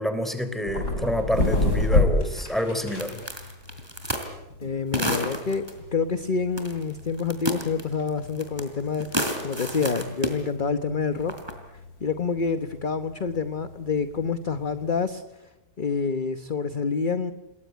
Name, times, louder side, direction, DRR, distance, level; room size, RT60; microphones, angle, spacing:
voice 1, 0.0-3.2, equal, ahead, 9 dB, 3.6 m, -27 dB
sound 1, 0.6-15.0, left 2 dB, 90° left, 6.4 m, -30 dB
sound 2, 3.0-4.3 4.9-5.7 6.6-6.9 7.2-8.7 8.9-10.4 11.2-11.5, equal, 15° right, 4.2 m, -29 dB
voice 2, 4.6-5.6 5.9-11.3 12.0-15.5 15.8-17.3, left 5 dB, 35° left, 10 dB, 1.1 m, -27 dB
28.5 x 21.0 x 9.3 m, 0.97 s
omnidirectional pair, 1.7 m